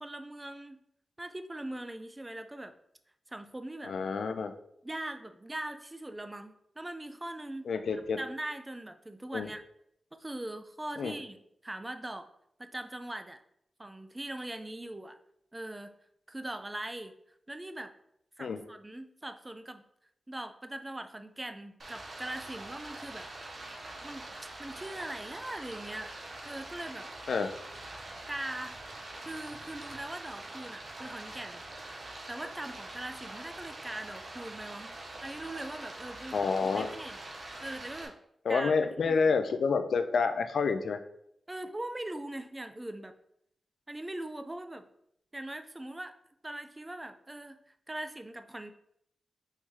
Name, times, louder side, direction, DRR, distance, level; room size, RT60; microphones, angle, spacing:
voice 1, 0.0-0.8 1.2-2.7 3.3-4.0 4.8-9.6 10.1-11.4 11.6-12.3 12.6-13.4 13.8-15.2 15.5-16.0 16.3-17.2 17.5-17.9 18.4-19.8 20.3-23.3 24.0-24.3 24.6-26.1 26.4-27.1 28.3-28.8 29.2-31.6 32.3-37.2 37.6-38.2 38.5-38.7 39.0-39.3 41.5-43.1 43.9-44.9 45.3-46.2 46.4-47.6 47.9-48.7, right 1 dB, 15° right, 8 dB, 0.4 m, -41 dB
voice 2, 3.8-4.5 7.7-8.2 9.3-9.5 11.0-11.1 18.4-18.6 27.3-27.5 36.3-36.9 38.4-41.0, left 5 dB, 80° left, 8 dB, 0.4 m, -28 dB
Stream, 21.8-38.1, right 2 dB, 50° right, 0.8 m, -44 dB
4.4 x 3.1 x 3.6 m, 0.73 s
wide cardioid pair, 95°, 0 cm